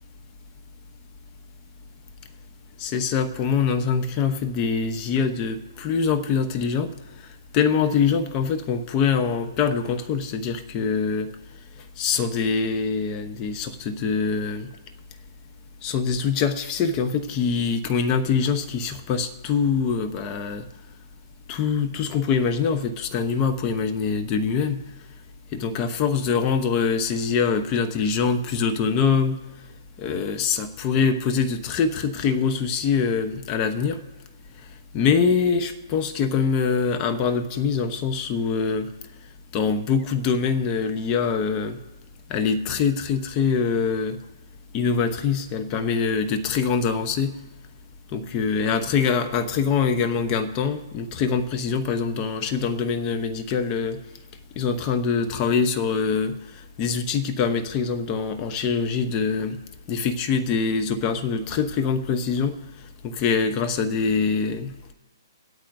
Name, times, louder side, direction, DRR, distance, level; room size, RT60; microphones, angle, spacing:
voice 1, 2.8-6.9 7.5-11.3 12.0-14.7 15.8-20.7 21.5-24.8 25.5-29.4 30.0-34.0 34.9-38.9 39.5-41.8 42.3-44.2 44.7-47.3 48.1-54.0 54.6-56.4 56.8-59.6 59.9-62.6 63.0-64.7, left 5 dB, 25° left, 8 dB, 0.9 m, -24 dB
24.5 x 8.5 x 2.7 m, 1.1 s
hypercardioid pair, 145°, 2 cm